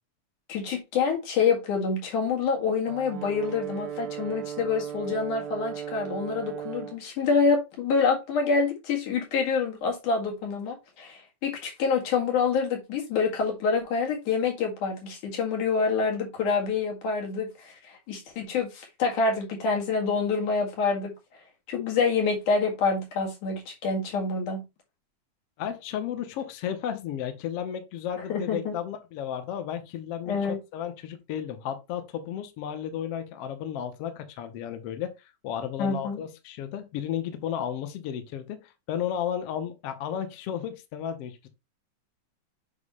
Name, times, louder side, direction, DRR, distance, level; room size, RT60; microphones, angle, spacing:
voice 1, 0.5-21.1 21.7-24.6 28.3-28.8 30.3-30.6 35.8-36.2, left 5 dB, 85° left, 3.4 m, -27 dB
Brass instrument, 2.9-7.0, right 9 dB, 70° right, 1.9 m, -36 dB
voice 2, 25.6-30.4 30.7-41.5, left 9 dB, 65° left, 1.8 m, -33 dB
8.3 x 3.0 x 5.5 m
omnidirectional pair, 3.5 m